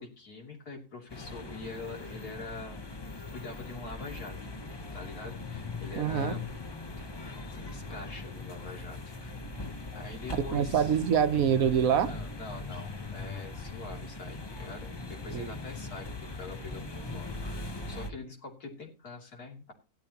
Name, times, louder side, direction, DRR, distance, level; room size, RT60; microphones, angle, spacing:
voice 1, 0.0-2.9 3.3-4.4 4.9-6.4 7.0-9.4 9.9-10.9 12.0-19.7, left 3 dB, 75° left, 3.4 m, -44 dB
sound 1, 1.1-18.1, left 3 dB, 25° left, 0.6 m, -40 dB
voice 2, 6.0-6.4 10.5-12.1 15.3-15.5, right 8 dB, 65° right, 1.2 m, -25 dB
16.5 x 12.0 x 2.9 m
omnidirectional pair, 1.6 m